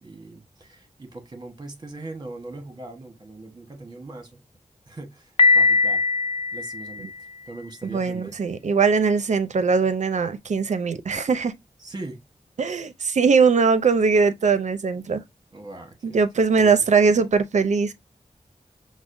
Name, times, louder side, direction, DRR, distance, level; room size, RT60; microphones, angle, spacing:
voice 1, 0.0-4.4 4.9-6.0 6.5-7.1 7.5-8.4 11.8-12.2 15.5-16.2 16.6-16.7, right 2 dB, 35° right, 1.1 m, -40 dB
Piano, 5.4-7.3, left 3 dB, 50° left, 0.4 m, -20 dB
voice 2, 7.9-11.5 12.6-15.2 16.0-17.9, right 5 dB, 65° right, 0.5 m, -20 dB
6.0 x 2.1 x 2.5 m
wide cardioid pair, 70°, 13 cm